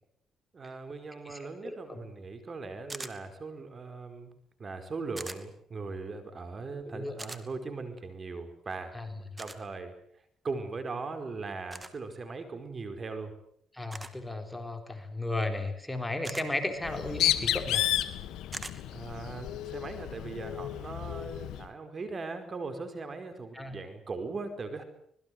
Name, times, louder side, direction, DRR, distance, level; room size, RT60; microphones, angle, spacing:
voice 1, 0.5-4.3 4.6-9.0 9.4-9.9 10.4-13.3 18.9-24.8, right 3 dB, 40° right, 8 dB, 4.9 m, -39 dB
voice 2, 1.3-2.0 6.8-7.1 8.9-9.1 13.7-17.9 23.5-23.8, left 2 dB, 10° left, 5 dB, 3.9 m, -35 dB
sound 1, 2.9-3.2 5.2-5.4 7.2-7.4 9.4-9.6 11.7-11.9 13.9-14.2 16.2-16.5 18.5-18.8, right 2 dB, 15° right, 2.6 m, -40 dB
Bird, 16.8-21.7, left 13 dB, 85° left, 1.8 m, -32 dB
26.0 x 21.0 x 7.9 m, 0.68 s
cardioid pair, 90°, 0 cm